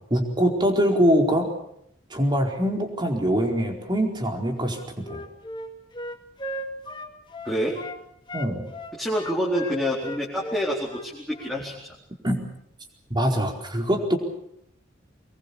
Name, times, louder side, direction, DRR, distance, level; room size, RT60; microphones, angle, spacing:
voice 1, 0.1-1.5 2.1-5.2 8.3-8.7 12.2-12.4 13.1-14.2, equal, 25° right, 3 dB, 4.5 m, -23 dB
Wind instrument woodwind instrument, 4.6-8.0 8.3-11.6, equal, 25° left, 2.3 m, -36 dB
voice 2, 7.4-7.8 9.0-11.7, equal, ahead, -5 dB, 4.4 m, -27 dB
25.0 x 22.0 x 7.0 m, 0.74 s
head